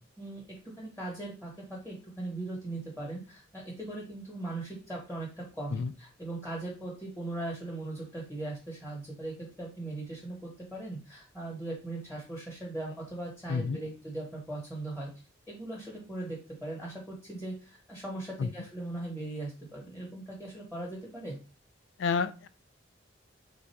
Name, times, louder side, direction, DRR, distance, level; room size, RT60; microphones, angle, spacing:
voice 1, 0.8-15.1 15.5-21.4, right 2 dB, 10° left, -3 dB, 1.3 m, -39 dB
voice 2, 22.0-22.5, left 5 dB, 70° left, 13 dB, 0.3 m, -29 dB
3.3 x 2.6 x 4.5 m, 0.33 s
head